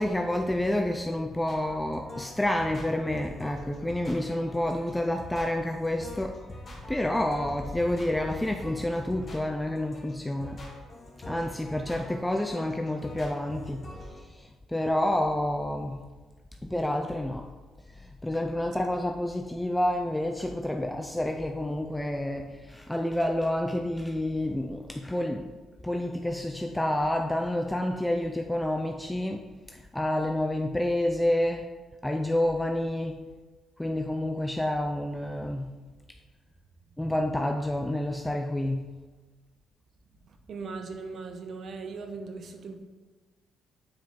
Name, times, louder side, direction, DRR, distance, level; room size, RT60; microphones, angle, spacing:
voice 1, 0.0-6.4 6.9-10.7 11.2-16.1 16.6-17.5 18.0-25.5 25.8-31.7 32.0-33.2 33.8-35.8 37.0-38.9, left 1 dB, 10° left, 4 dB, 0.5 m, -29 dB
sound 1, 1.5-14.2, left 1 dB, 40° left, 1.7 m, -45 dB
voice 2, 40.2-42.8, right 4 dB, 60° right, 5 dB, 1.0 m, -39 dB
8.7 x 4.9 x 3.7 m, 1.3 s
cardioid pair, 90°, 0 cm